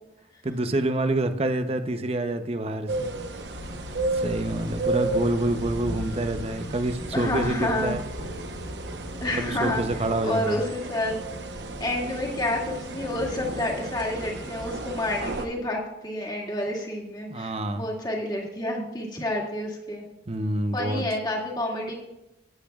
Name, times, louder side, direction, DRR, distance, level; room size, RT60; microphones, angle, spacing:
voice 1, 0.4-3.1 4.1-8.0 9.5-10.6 17.3-17.9 20.3-21.1, right 1 dB, 35° right, 8 dB, 0.7 m, -27 dB
sound 1, 2.9-15.5, right 2 dB, 75° right, 1.0 m, -34 dB
sound 2, 3.5-10.1, left 1 dB, 75° left, 0.7 m, -40 dB
voice 2, 7.1-7.9 9.2-9.8 10.2-11.2 11.8-20.1 20.7-21.9, left 1 dB, 25° left, -2 dB, 2.2 m, -29 dB
17.0 x 8.3 x 2.4 m, 0.92 s
head